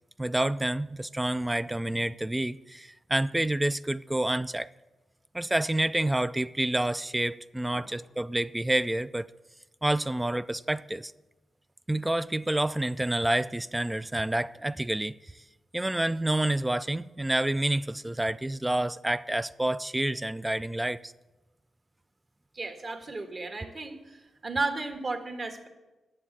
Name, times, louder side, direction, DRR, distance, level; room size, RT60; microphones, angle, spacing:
voice 1, 0.2-4.7 5.3-9.3 9.8-11.1 11.9-15.1 15.7-21.1, right 1 dB, 10° right, 0.3 m, -28 dB
voice 2, 22.5-24.0 24.4-25.7, right 3 dB, 40° right, 1.5 m, -33 dB
9.9 x 7.4 x 8.4 m
cardioid pair, 90°, 0 cm